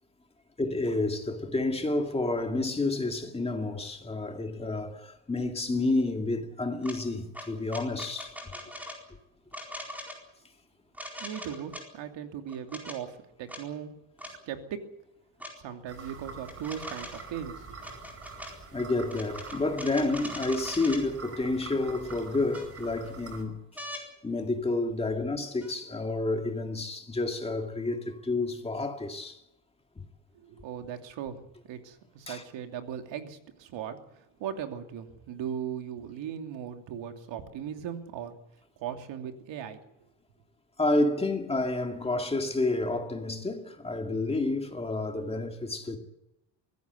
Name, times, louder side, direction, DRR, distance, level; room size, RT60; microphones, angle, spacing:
voice 1, 0.6-8.4 18.7-23.8 24.2-29.4 30.0-30.1 32.3-32.4 40.8-46.0, left 2 dB, 15° left, 2.2 m, -30 dB
sound 1, 6.8-7.0 7.3-9.0 9.5-10.2 10.9-11.8 12.5-13.0 13.5-13.6 14.2-14.3 15.4-15.5 16.4-17.3 17.8-18.5 19.1-21.0 22.1-22.2 22.5-23.1 23.8-24.0 25.6-25.7, equal, 5° right, 4.4 m, -41 dB
voice 2, 11.2-13.9 14.2-14.8 15.6-17.8 30.3-38.4 38.8-39.8, right 9 dB, 90° right, 2.9 m, -38 dB
sound 2, 15.9-23.4, right 4 dB, 30° right, 4.9 m, -45 dB
24.0 x 17.0 x 8.0 m
cardioid pair, 180°, 43 cm